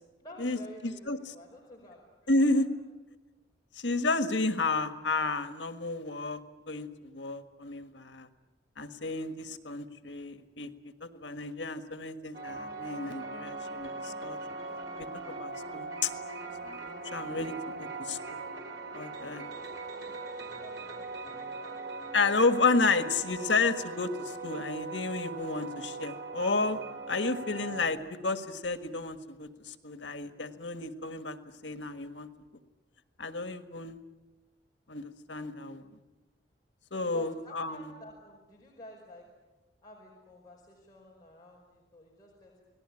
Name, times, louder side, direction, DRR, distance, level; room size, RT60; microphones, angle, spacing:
voice 1, 0.2-2.6 19.1-21.1 21.4-21.8 36.9-39.3 39.8-42.6, left 1 dB, 20° left, -2 dB, 5.2 m, -52 dB
voice 2, 0.8-1.2 2.3-2.7 3.8-6.4 6.7-8.3 8.8-10.7 11.0-14.4 15.0-16.1 16.6-17.5 17.8-18.2 18.9-19.4 22.1-26.8 27.1-31.4 31.6-32.3 33.2-34.0 34.9-35.8 36.9-37.9, left 3 dB, 85° left, 9 dB, 1.6 m, -31 dB
sound 1, 12.3-27.9, right 3 dB, 75° right, 4.2 m, -40 dB
29.0 x 19.0 x 9.9 m, 1.2 s
head